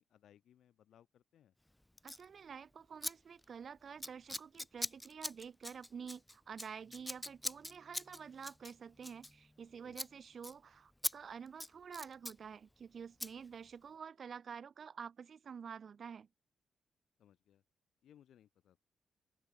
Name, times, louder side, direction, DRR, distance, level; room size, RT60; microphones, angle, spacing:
voice 1, 0.0-1.5 9.8-10.0 17.2-17.6 18.0-18.8, left 10 dB, 75° left, 3.1 m, -65 dB
Scissors, 2.0-2.2 3.0-3.1 3.4-3.6 4.0-9.7 9.9-10.1 10.4-10.5 11.0-11.1 11.5-12.4 13.2-13.3, left 1 dB, 5° left, 0.3 m, -42 dB
voice 2, 2.0-16.3, right 6 dB, 45° right, 3.0 m, -49 dB
wide cardioid pair, 160°, 0 cm